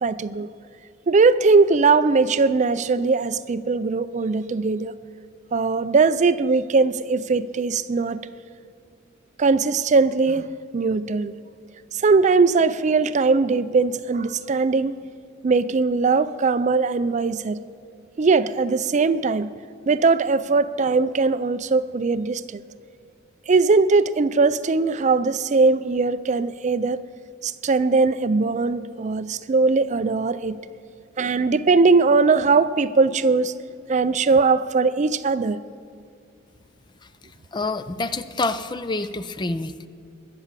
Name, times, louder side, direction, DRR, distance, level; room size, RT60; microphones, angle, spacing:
voice 1, 0.0-0.5 1.1-4.9 5.5-8.2 9.4-10.5 10.7-11.3 11.9-14.9 15.4-17.6 18.2-19.5 19.9-22.4 23.5-27.0 27.4-30.6 31.2-33.5 33.9-35.6, right 4 dB, 35° right, 14 dB, 0.4 m, -20 dB
voice 2, 37.5-39.9, left 3 dB, 20° left, 13 dB, 0.5 m, -27 dB
21.5 x 8.5 x 7.4 m, 2.3 s
head